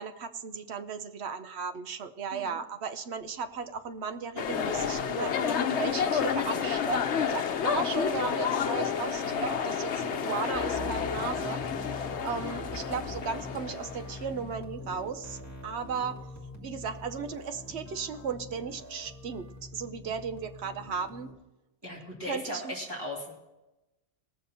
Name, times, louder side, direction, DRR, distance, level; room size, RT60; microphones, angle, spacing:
voice 1, 0.0-11.6 12.2-16.2 16.6-21.3 22.2-22.9, right 6 dB, 70° right, 9 dB, 1.0 m, -36 dB
sound 1, 4.4-14.2, left 7 dB, 70° left, 1.0 m, -30 dB
sound 2, 10.5-21.3, left 1 dB, 15° left, 2.0 m, -43 dB
voice 2, 21.8-23.3, left 1 dB, 20° right, -5 dB, 2.1 m, -38 dB
18.5 x 7.0 x 4.3 m, 0.99 s
omnidirectional pair, 1.2 m